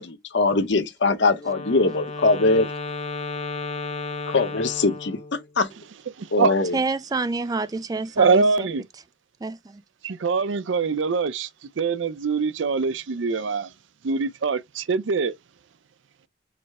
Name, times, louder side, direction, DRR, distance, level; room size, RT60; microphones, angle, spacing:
voice 1, 0.0-2.7 4.3-5.2 5.6-5.7 6.3-6.8, left 3 dB, 70° left, 0.8 m, -21 dB
Wind instrument woodwind instrument, 1.4-5.5, left 3 dB, 35° left, 0.6 m, -33 dB
voice 2, 6.2-6.5 8.2-8.8 10.0-11.5 11.8-13.7 14.0-15.3, right 4 dB, 85° right, 0.5 m, -23 dB
voice 3, 6.7-8.7 9.4-9.8, right 3 dB, 20° right, 0.3 m, -28 dB
4.9 x 2.1 x 4.7 m
head